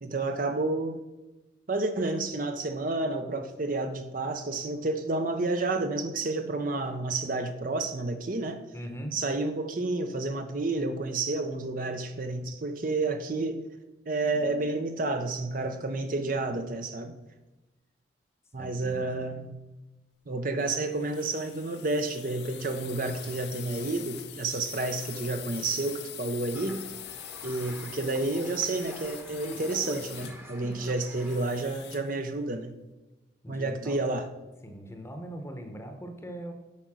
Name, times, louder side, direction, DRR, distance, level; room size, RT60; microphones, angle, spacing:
voice 1, 0.0-1.0 1.7-8.6 9.1-13.6 14.1-17.1 18.5-19.6 20.3-26.8 27.4-32.7 33.5-34.3, right 2 dB, 50° right, 7 dB, 0.7 m, -30 dB
voice 2, 8.7-9.2 18.5-19.0 33.4-34.0 34.6-36.5, right 1 dB, 15° left, 5 dB, 0.9 m, -40 dB
sound 1, 20.6-32.2, left 11 dB, 65° left, 0.7 m, -44 dB
sound 2, 26.5-31.8, right 1 dB, 15° right, 1.0 m, -45 dB
8.6 x 5.2 x 6.1 m, 1.0 s
head